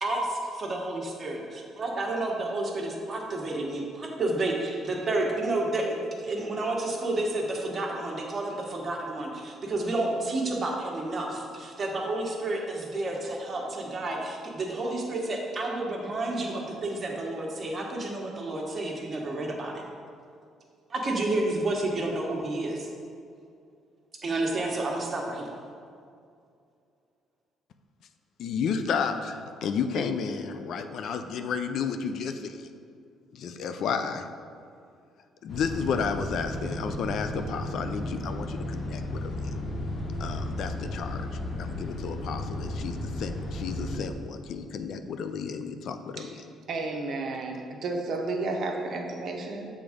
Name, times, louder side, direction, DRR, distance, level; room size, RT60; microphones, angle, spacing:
voice 1, 0.0-19.7 20.9-22.9 24.2-25.5, right 2 dB, 35° right, -1 dB, 1.3 m, -30 dB
voice 2, 28.4-32.7 33.3-34.3 35.4-39.5 40.2-41.2 41.6-46.4, left 6 dB, 65° left, 8 dB, 0.4 m, -32 dB
sound 1, 35.5-44.0, left 1 dB, 45° left, 1.1 m, -34 dB
voice 3, 46.7-49.7, right 3 dB, 60° right, 2 dB, 0.8 m, -32 dB
6.8 x 3.6 x 5.1 m, 2.4 s
cardioid pair, 90°, 0 cm